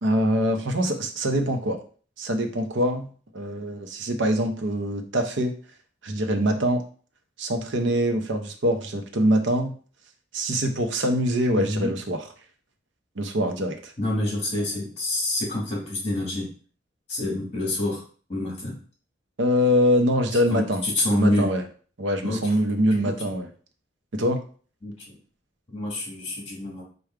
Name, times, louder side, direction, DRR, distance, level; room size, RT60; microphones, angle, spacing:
voice 1, 0.0-1.8 2.2-5.5 6.0-6.8 7.4-9.7 10.3-12.2 13.2-13.9 19.4-20.8 21.1-21.6 22.0-23.5 24.1-24.4, equal, 70° right, 5 dB, 0.7 m, -24 dB
voice 2, 11.6-11.9 14.0-16.5 17.1-18.0 18.3-18.8 20.5-21.5 22.2-22.6 23.0-23.3 24.8-25.2 25.7-26.8, left 1 dB, 35° left, -2 dB, 2.0 m, -27 dB
5.0 x 2.3 x 4.6 m, 0.42 s
head